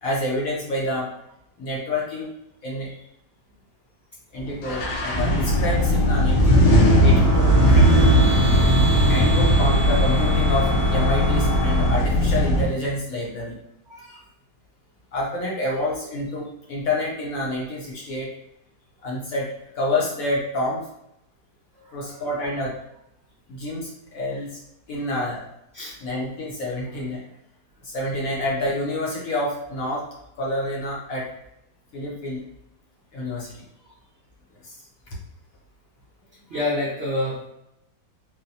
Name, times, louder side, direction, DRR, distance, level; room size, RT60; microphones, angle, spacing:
voice 1, 0.0-1.1 1.6-2.3 2.6-2.9 4.3-6.6 7.0-8.0 9.1-13.6 15.1-18.3 19.0-19.5 19.7-20.8 21.9-22.7 23.5-24.6 24.9-25.4 26.0-27.2 27.8-30.1 30.4-31.3 31.9-32.4 33.1-33.6 34.6-34.8, left 1 dB, 60° left, -4 dB, 1.0 m, -28 dB
sound 1, 4.6-12.6, equal, 80° left, 1.5 m, -18 dB
sound 2, 6.2-11.9, right 1 dB, 20° left, 0.4 m, -29 dB
voice 2, 13.9-14.2 21.7-22.2 25.7-26.0 36.5-37.5, left 2 dB, 65° right, -6 dB, 0.6 m, -29 dB
4.0 x 2.0 x 2.7 m, 0.79 s
omnidirectional pair, 2.0 m